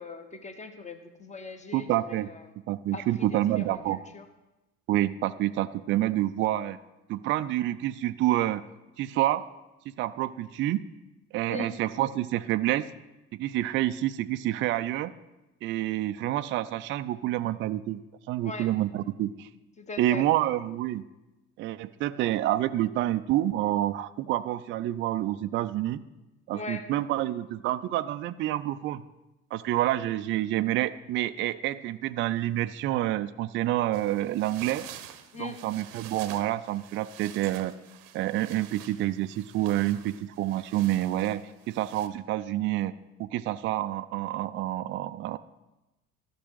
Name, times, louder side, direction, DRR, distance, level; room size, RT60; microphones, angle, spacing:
voice 1, 0.0-2.4 2.9-4.2 11.5-11.7 18.4-18.7 19.8-20.2 26.5-26.9 35.3-35.6, left 4 dB, 15° left, 8 dB, 1.1 m, -40 dB
voice 2, 1.7-2.3 2.7-4.0 4.9-6.8 7.1-8.6 9.0-9.4 10.0-10.8 11.3-12.9 13.3-15.1 15.6-18.0 18.3-19.5 20.0-21.0 21.6-26.0 26.5-29.0 29.5-34.8 35.4-37.7 38.1-42.9 43.2-45.4, right 14 dB, 30° right, 12 dB, 0.4 m, -28 dB
sound 1, 33.9-42.1, right 11 dB, 50° right, 0.8 m, -47 dB
13.0 x 6.2 x 4.7 m, 1.0 s
figure-of-eight pair, 55°, 43 cm